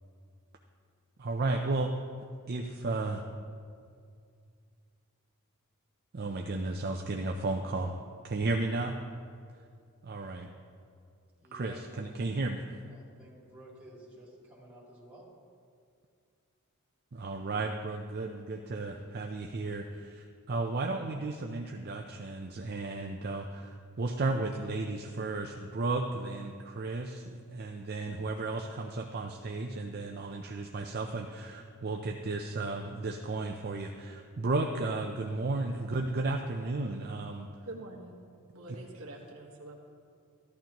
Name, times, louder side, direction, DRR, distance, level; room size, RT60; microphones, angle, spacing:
voice 1, 1.2-1.9 2.5-3.2 6.1-7.9 8.2-8.9 10.0-10.5 11.5-12.6 17.1-37.5, right 3 dB, 45° right, 2 dB, 0.5 m, -34 dB
voice 2, 11.4-15.3, right 1 dB, 5° right, -7 dB, 3.0 m, -53 dB
voice 3, 37.6-38.2 38.5-39.8, right 2 dB, 65° right, -1 dB, 1.5 m, -45 dB
14.5 x 11.5 x 3.0 m, 2.3 s
head